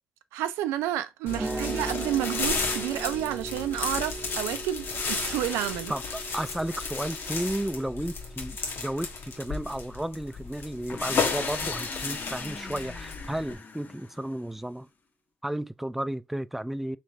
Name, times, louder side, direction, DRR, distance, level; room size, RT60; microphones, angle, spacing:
voice 1, 0.3-5.9, right 13 dB, 85° right, 0.3 m, -30 dB
sound 1, 1.3-13.5, left 4 dB, 65° left, 1.2 m, -33 dB
voice 2, 1.3-1.9 5.9-14.9 15.4-17.0, right 1 dB, 5° right, 0.4 m, -33 dB
sound 2, 1.3-9.4, right 4 dB, 35° right, 0.7 m, -39 dB
sound 3, 10.9-14.6, left 4 dB, 45° left, 1.0 m, -40 dB
3.3 x 3.2 x 4.0 m
hypercardioid pair, 45°, 4 cm